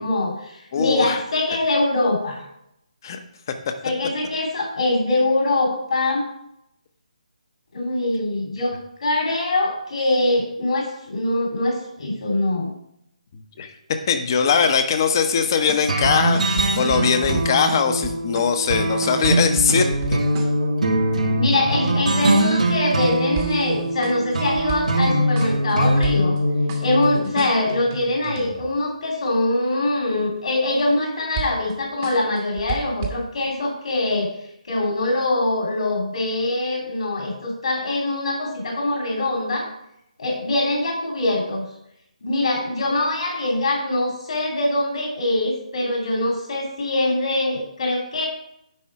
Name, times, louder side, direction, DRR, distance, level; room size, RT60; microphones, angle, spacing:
voice 1, 0.0-2.4 3.8-6.3 7.7-12.7 21.4-26.3 26.8-34.3 34.6-39.7 40.2-41.6 42.2-48.3, left 2 dB, 60° left, -1 dB, 2.7 m, -23 dB
voice 2, 0.7-1.2 3.0-3.2 13.6-20.2, left 6 dB, 30° left, 8 dB, 0.8 m, -21 dB
sound 1, 15.6-20.5 23.4-25.1 25.4-25.7 26.0-26.4 26.7-28.7 31.4-31.8 32.0-33.1, right 6 dB, 20° right, 0.9 m, -33 dB
sound 2, 15.9-27.2, right 1 dB, 80° right, 1.5 m, -22 dB
9.9 x 4.1 x 4.7 m, 0.77 s
hypercardioid pair, 165°, 4 cm